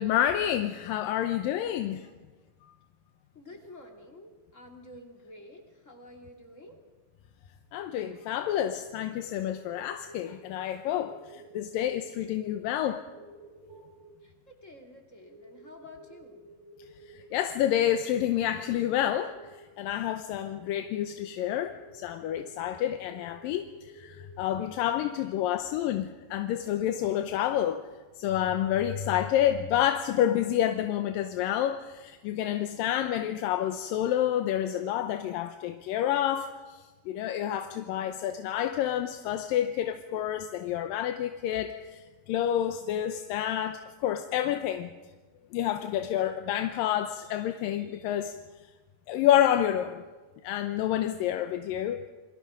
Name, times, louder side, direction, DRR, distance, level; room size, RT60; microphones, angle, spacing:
voice 1, 0.0-2.1 2.6-2.7 7.7-13.0 17.1-19.3 19.8-27.8 28.2-44.9 45.5-48.3 49.1-50.0 50.4-52.0, left 11 dB, 80° left, 8 dB, 2.6 m, -29 dB
voice 2, 3.3-6.8 14.2-16.5 24.0-24.1 25.9-26.0, left 1 dB, 25° left, 3 dB, 2.5 m, -50 dB
sound 1, 9.3-10.6 10.9-11.6 11.9-12.6 13.1-14.1 15.2-17.3 17.6-18.1 18.6-19.6 20.6-21.9 22.2-22.8 23.1-24.2, right 2 dB, 75° right, 9.6 m, -52 dB
29.0 x 22.0 x 5.1 m, 1.3 s
omnidirectional pair, 4.0 m